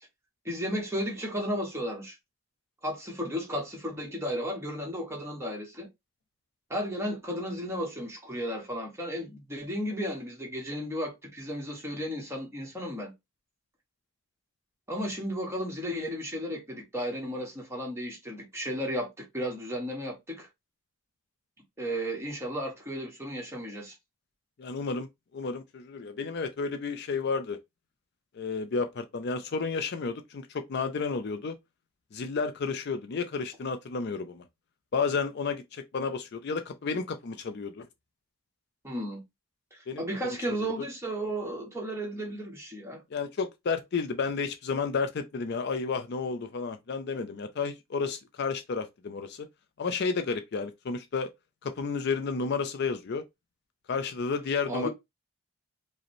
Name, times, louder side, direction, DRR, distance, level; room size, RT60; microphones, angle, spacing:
voice 1, 0.4-2.1 2.8-5.9 6.7-13.1 14.9-20.5 21.8-23.9 38.8-39.2 39.7-43.0 54.7-54.9, equal, 10° right, 1.2 m, -34 dB
voice 2, 24.6-25.1 25.3-27.6 28.3-31.6 32.1-34.4 34.9-37.9 39.9-40.0 40.5-40.7 43.1-49.5 49.8-51.3 51.6-53.2 53.9-54.9, left 4 dB, 45° left, 0.4 m, -31 dB
5.0 x 2.1 x 3.0 m
head